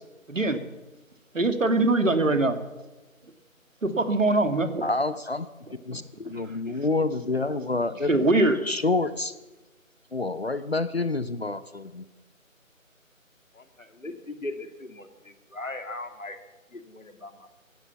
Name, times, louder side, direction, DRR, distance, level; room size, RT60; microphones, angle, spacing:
voice 1, 0.3-0.6 1.3-2.6 3.8-4.8 5.9-6.0 8.1-8.5, right 2 dB, 65° right, 8 dB, 2.2 m, -22 dB
voice 2, 4.8-5.5 5.8-8.1 8.6-9.3 10.1-12.0, left 3 dB, 50° left, 14 dB, 0.8 m, -28 dB
voice 3, 13.5-16.4 16.7-17.5, left 2 dB, 70° left, 7 dB, 2.5 m, -39 dB
16.0 x 12.0 x 7.3 m, 1.1 s
figure-of-eight pair, 165°, 41 cm